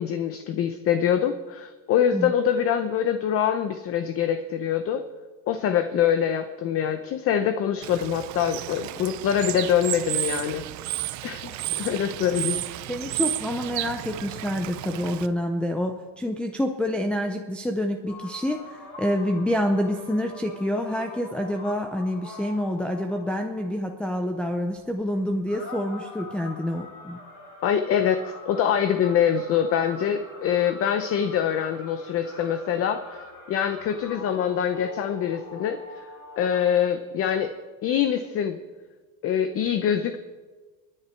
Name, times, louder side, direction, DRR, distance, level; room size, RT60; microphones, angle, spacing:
voice 1, 0.0-5.0 5.5-10.6 11.2-12.6 27.6-33.2 33.5-36.0 36.4-37.5 37.8-38.6 39.2-40.2, left 9 dB, 35° left, 9 dB, 0.7 m, -24 dB
Bird / Water, 7.8-15.3, right 16 dB, 45° right, 0.7 m, -32 dB
voice 2, 11.5-11.8 12.9-27.2, left 1 dB, 5° left, 2 dB, 0.5 m, -27 dB
sound 1, 18.1-36.7, left 3 dB, 70° left, 6.3 m, -43 dB
28.0 x 10.0 x 4.5 m, 1.4 s
cardioid pair, 150°, 41 cm